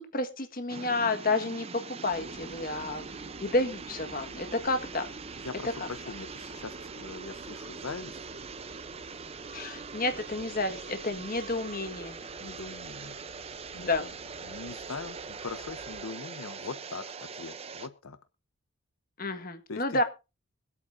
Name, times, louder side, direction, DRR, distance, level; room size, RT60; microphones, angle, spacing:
voice 1, 0.0-1.7 2.0-5.1 9.5-12.2 13.9-14.1 19.2-20.0, left 2 dB, 40° left, 8 dB, 1.6 m, -30 dB
sound 1, 0.7-17.9, right 4 dB, 25° right, 0.6 m, -42 dB
sound 2, 2.1-16.0, right 2 dB, 70° right, 2.4 m, -52 dB
voice 2, 5.4-8.2 12.4-13.2 13.7-14.1 14.4-18.2 19.7-20.0, left 4 dB, 75° left, 12 dB, 0.8 m, -41 dB
25.0 x 8.6 x 2.7 m, 0.29 s
head